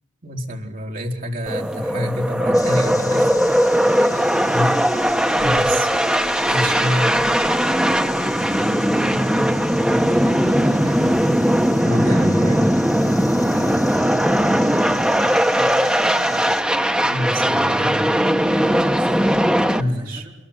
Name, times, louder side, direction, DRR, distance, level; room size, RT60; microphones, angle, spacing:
voice 1, 0.2-3.3 4.5-5.0 5.3-5.9 6.4-7.1 11.8-12.6 17.0-18.1 19.5-20.2, equal, 50° right, 1 dB, 4.0 m, -27 dB
sound 1, 1.5-19.8, equal, 5° right, 1.2 m, -19 dB
sound 2, 2.5-16.6, left 4 dB, 20° left, 2.3 m, -38 dB
voice 2, 3.9-4.3 5.3-5.8 6.6-6.9 7.6-8.7 9.1-11.4 11.9-12.3 13.3-16.6 18.9-20.3, equal, 25° right, -1 dB, 4.4 m, -37 dB
Brass instrument, 4.4-8.6, left 3 dB, 40° left, 7.8 m, -44 dB
27.0 x 23.0 x 9.0 m, 0.93 s
head